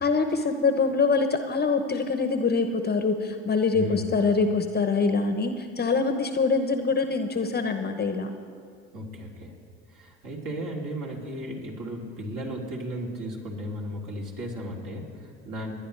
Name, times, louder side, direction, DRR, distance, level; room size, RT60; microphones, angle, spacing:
voice 1, 0.0-8.3, left 4 dB, 25° left, 7 dB, 1.0 m, -24 dB
voice 2, 3.7-4.1 8.9-9.5 9.9-15.7, equal, 55° right, -2 dB, 3.1 m, -35 dB
26.0 x 10.5 x 3.3 m, 2.2 s
hypercardioid pair, 65°, 38 cm